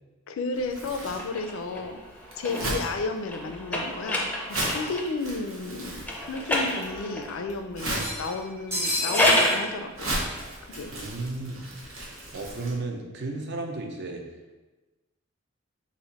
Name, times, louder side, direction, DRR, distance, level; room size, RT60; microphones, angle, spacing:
voice 1, 0.3-2.0 2.4-10.1 10.7-10.9, left 3 dB, 80° left, 7 dB, 0.4 m, -33 dB
Crumpling crinkling, 0.5-12.7, right 1 dB, 85° right, 1.0 m, -37 dB
sound 1, 1.1-5.2 6.0-7.4 8.8-9.7, left 1 dB, 10° left, 0.5 m, -28 dB
sound 2, 4.4-4.5 4.8-4.9 6.0-6.1 6.4-6.5 7.8-9.6, left 1 dB, 15° right, 0.9 m, -31 dB
voice 2, 10.9-11.7 12.3-14.2, right 2 dB, 60° right, 2 dB, 0.6 m, -34 dB
4.1 x 2.5 x 4.0 m, 1.1 s
head